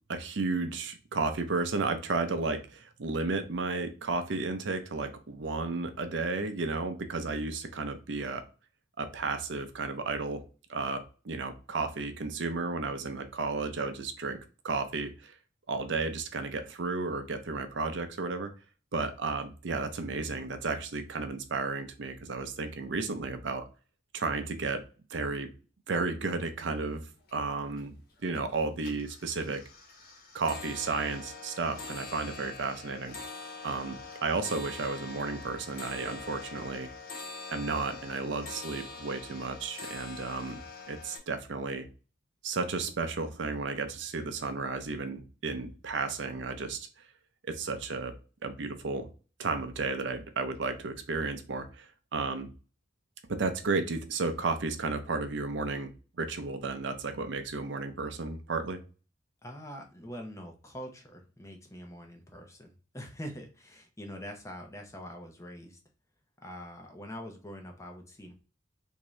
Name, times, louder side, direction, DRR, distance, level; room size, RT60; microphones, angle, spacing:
voice 1, 0.1-8.4 9.0-10.4 10.7-14.4 14.6-15.3 15.7-18.5 18.9-23.6 24.1-24.8 25.1-25.5 25.9-27.0 27.3-27.9 28.2-29.6 30.3-33.2 33.6-36.9 37.5-40.6 40.9-41.9 42.4-46.9 47.5-48.1 48.4-49.1 49.4-52.5 53.3-55.9 56.2-58.8, right 3 dB, 70° right, 8 dB, 0.6 m, -33 dB
sound 1, 26.8-26.9 27.2-27.8 28.2-28.5 28.8-41.2, left 3 dB, 55° left, 1.1 m, -44 dB
voice 2, 59.4-65.8 66.4-68.3, equal, 15° left, 3 dB, 0.7 m, -44 dB
3.5 x 2.7 x 3.1 m, 0.35 s
head